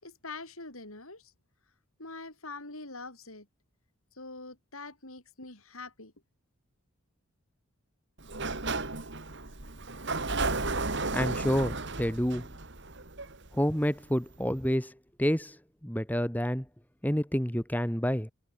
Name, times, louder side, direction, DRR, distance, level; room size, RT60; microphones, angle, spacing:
voice 1, 0.0-1.3 2.0-3.5 4.1-6.1, left 3 dB, 70° left, 7.4 m, -44 dB
Sliding door, 8.2-13.9, right 3 dB, 50° right, 2.9 m, -33 dB
voice 2, 11.1-12.5 13.5-14.9 15.2-15.6 15.8-16.6 17.0-18.3, equal, 5° left, 3.1 m, -28 dB
head